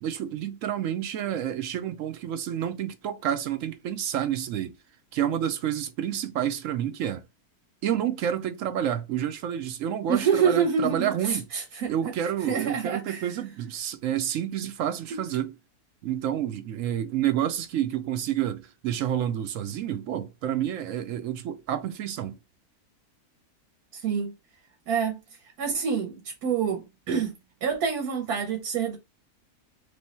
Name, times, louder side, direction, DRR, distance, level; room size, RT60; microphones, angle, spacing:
voice 1, 0.0-4.7 5.1-7.2 7.8-11.5 11.9-15.5 16.0-22.4, right 10 dB, 70° right, 0.9 m, -29 dB
voice 2, 10.1-11.9 12.5-13.3 15.1-15.2 23.9-24.3 24.9-25.2 25.6-27.3 27.6-29.0, right 6 dB, 90° right, 1.4 m, -27 dB
3.4 x 3.1 x 4.1 m
omnidirectional pair, 1.6 m